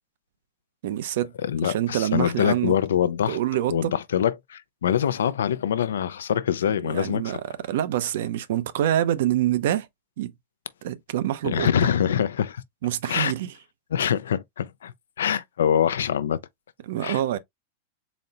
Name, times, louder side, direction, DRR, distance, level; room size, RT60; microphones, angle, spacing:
voice 1, 0.8-1.3 1.6-2.7 3.3-3.9 6.8-9.9 10.2-10.3 10.8-11.7 12.8-13.5 16.8-17.4, right 12 dB, 70° right, 0.5 m, -26 dB
voice 2, 1.4-3.4 3.7-7.4 11.4-12.6 13.1-13.3 13.9-16.4 17.0-17.4, left 9 dB, 85° left, 0.4 m, -24 dB
4.1 x 2.0 x 3.8 m
hypercardioid pair, 120°, 0 cm